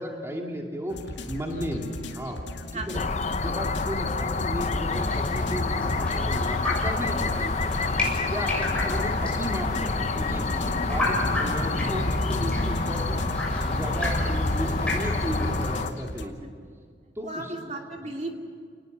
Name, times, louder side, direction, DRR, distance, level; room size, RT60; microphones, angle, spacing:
voice 1, 0.0-2.4 2.7-3.0 3.4-7.5 8.3-13.2 13.7-16.5 17.2-17.5 18.0-18.1, equal, 15° right, 0 dB, 2.3 m, -34 dB
sound 1, 0.9-16.3, left 1 dB, 75° left, 2.3 m, -38 dB
sound 2, 2.9-15.9, left 3 dB, 35° left, 0.7 m, -28 dB
sound 3, 4.9-15.8, left 1 dB, 5° left, 6.7 m, -31 dB
voice 2, 8.0-8.4 12.3-12.9 13.8-14.1 16.2-16.3 17.2-18.3, right 2 dB, 35° right, 2 dB, 2.5 m, -37 dB
29.0 x 20.0 x 8.0 m, 2.2 s
head